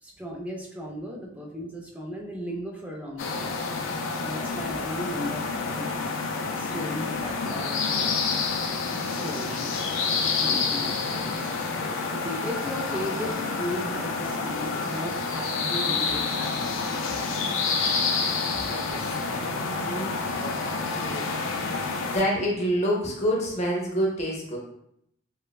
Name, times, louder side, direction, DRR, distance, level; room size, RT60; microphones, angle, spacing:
voice 1, 0.0-3.6 4.2-5.9 6.6-8.2 9.1-9.8 10.2-11.6 12.1-16.6, equal, 5° right, -1 dB, 0.4 m, -36 dB
sound 1, 3.2-22.2, left 4 dB, 70° left, 0.3 m, -28 dB
voice 2, 4.4-4.9 10.3-10.8 18.5-21.3 22.1-24.6, equal, 35° left, -2 dB, 0.6 m, -29 dB
3.1 x 2.1 x 2.3 m, 0.74 s
head